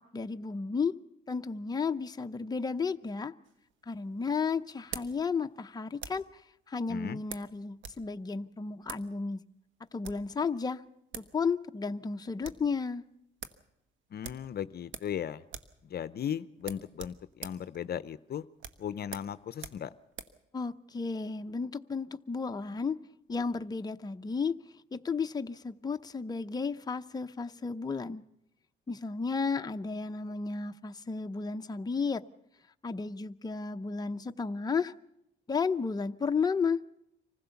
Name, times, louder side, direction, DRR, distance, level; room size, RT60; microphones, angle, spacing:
voice 1, 0.1-0.9 1.3-3.3 3.9-6.4 6.7-9.4 9.9-10.8 11.2-13.0 20.5-23.0 23.3-24.5 24.9-28.2 28.9-32.2 32.8-34.9 35.5-36.8, left 5 dB, 20° left, 0.7 m, -33 dB
sound 1, 3.4-6.4 7.3-8.0 8.3-8.4 8.8-9.1 9.8-10.3 10.9-11.0 11.1-11.4 11.7-11.8 12.1-12.7 13.0-13.1 13.4-13.6 14.2-15.2 15.5-15.8 16.1-16.2 16.6-20.4, right 7 dB, 70° right, 1.2 m, -45 dB
voice 2, 6.9-7.2 14.1-15.4 15.8-18.4 18.8-19.9, left 9 dB, 50° left, 0.7 m, -37 dB
25.0 x 15.5 x 7.0 m
cardioid pair, 90°, 20 cm